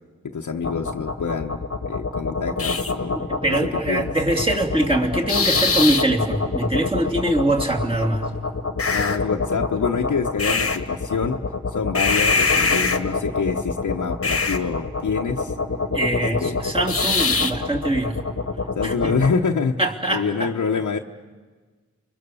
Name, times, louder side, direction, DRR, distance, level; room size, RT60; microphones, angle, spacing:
voice 1, 0.2-3.2 3.5-4.1 8.9-11.4 11.7-15.6 16.1-16.6 18.7-19.8 20.1-21.0, left 5 dB, 80° left, 0 dB, 1.0 m, -26 dB
sound 1, 0.6-19.4, left 4 dB, 50° left, 1.3 m, -24 dB
voice 2, 3.1-8.3 15.9-18.2 18.8-19.1 19.8-20.5, right 1 dB, 20° right, -1 dB, 3.1 m, -23 dB
29.5 x 23.5 x 7.0 m, 1.4 s
wide cardioid pair, 70°, 30 cm